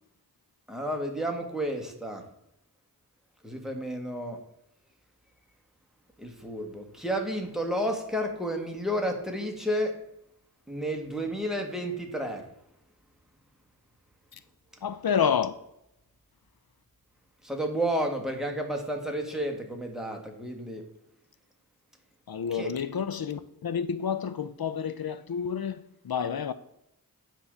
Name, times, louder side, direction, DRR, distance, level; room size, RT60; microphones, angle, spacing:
voice 1, 0.7-2.2 3.4-4.4 6.2-10.0 10.7-12.4 17.4-20.8 22.5-22.8, equal, ahead, 1.6 m, -31 dB
voice 2, 14.8-15.6 22.3-26.5, left 7 dB, 75° left, 0.5 m, -29 dB
9.6 x 3.7 x 6.7 m
wide cardioid pair, 40°, 37 cm